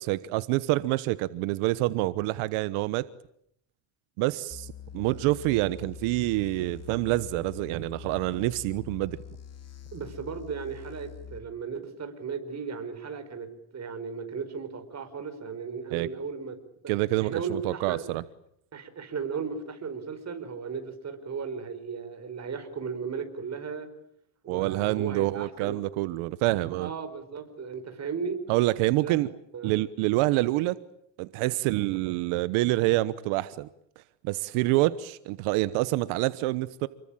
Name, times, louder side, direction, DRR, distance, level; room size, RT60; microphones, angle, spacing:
voice 1, 0.0-3.1 4.2-9.2 15.9-16.1 16.9-18.2 24.5-26.9 28.5-29.3 29.6-30.8 31.2-33.7 34.2-36.9, right 18 dB, 85° right, 1.2 m, -27 dB
sound 1, 4.5-11.4, left 8 dB, 30° left, 2.5 m, -44 dB
voice 2, 9.9-16.6 16.8-18.0 18.7-23.9 24.4-25.9 26.8-28.4 29.0-29.2 29.5-29.8, right 5 dB, 35° right, 5.3 m, -36 dB
29.0 x 22.0 x 8.9 m
cardioid pair, 130°, 48 cm